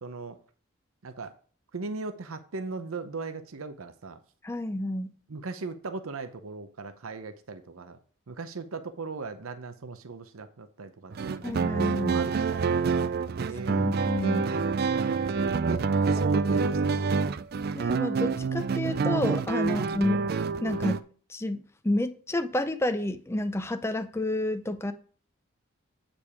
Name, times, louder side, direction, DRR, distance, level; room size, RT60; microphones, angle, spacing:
voice 1, 0.0-0.4 1.0-1.3 1.7-4.2 5.3-8.0 8.3-11.6 12.0-13.9 14.5-17.3 19.6-19.9, right 3 dB, 85° right, 0.7 m, -39 dB
voice 2, 4.4-5.2 11.4-12.2 13.7-14.5 17.7-20.2 20.6-24.9, left 1 dB, 10° left, 0.5 m, -30 dB
sound 1, 11.1-21.0, right 5 dB, 45° right, 0.4 m, -27 dB
8.7 x 5.2 x 4.8 m
head